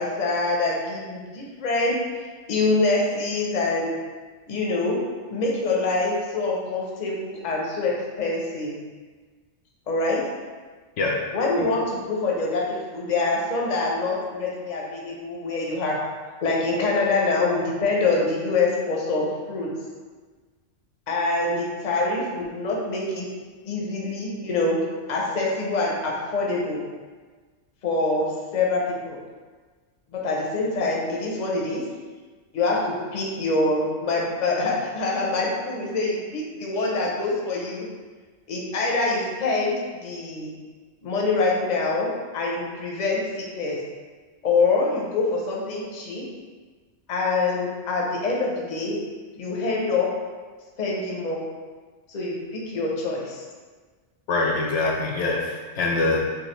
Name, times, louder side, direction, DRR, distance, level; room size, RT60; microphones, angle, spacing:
voice 1, 0.0-2.0 2.5-3.9 4.5-5.0 5.3-8.8 9.9-10.2 11.3-16.0 16.4-19.7 21.1-23.2 23.6-24.8 25.1-26.8 27.8-29.2 30.1-31.8 32.5-37.9 38.5-39.8 40.0-40.5 41.0-43.8 44.4-46.3 47.1-49.0 49.4-50.1 50.8-51.4 52.1-53.4, left 3 dB, 40° left, -2 dB, 0.8 m, -25 dB
voice 2, 54.3-56.2, left 3 dB, 75° left, -1 dB, 0.9 m, -24 dB
6.3 x 2.5 x 3.1 m, 1.4 s
omnidirectional pair, 1.3 m